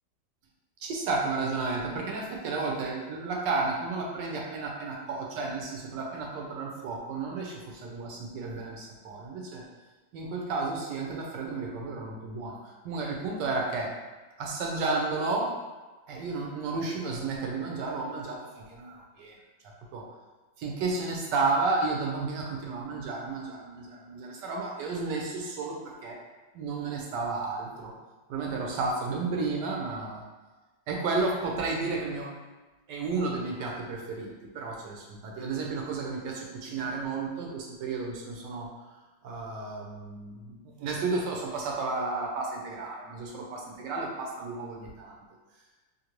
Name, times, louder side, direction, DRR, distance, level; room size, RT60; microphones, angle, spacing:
voice 1, 0.8-9.6 10.1-12.6 12.8-13.9 14.4-15.5 16.1-19.4 19.9-20.0 20.6-26.2 26.5-27.9 28.3-30.2 30.9-32.3 32.9-38.7 39.2-45.1, right 3 dB, 75° right, -1 dB, 1.2 m, -32 dB
3.0 x 2.6 x 2.9 m, 1.2 s
omnidirectional pair, 2.0 m